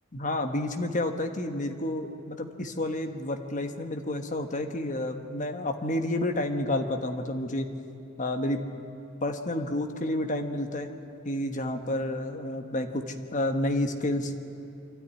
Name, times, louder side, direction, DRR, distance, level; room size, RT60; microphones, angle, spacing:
voice 1, 0.1-7.7 8.2-8.6 9.2-10.9 11.2-13.0 13.3-14.3, left 1 dB, 40° left, 5 dB, 1.3 m, -30 dB
24.5 x 13.0 x 9.7 m, 2.6 s
head